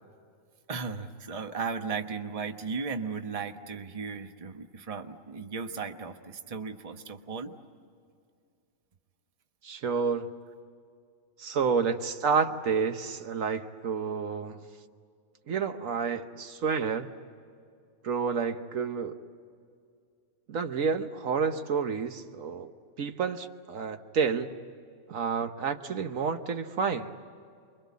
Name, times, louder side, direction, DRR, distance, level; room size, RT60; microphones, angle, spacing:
voice 1, 0.7-7.5, right 5 dB, 30° right, 6 dB, 1.1 m, -36 dB
voice 2, 9.6-10.3 11.4-14.6 15.5-17.1 18.0-19.2 20.5-22.7 23.0-24.5 25.1-27.1, right 5 dB, 70° right, 8 dB, 1.4 m, -29 dB
29.0 x 23.5 x 8.4 m, 2.3 s
omnidirectional pair, 1.4 m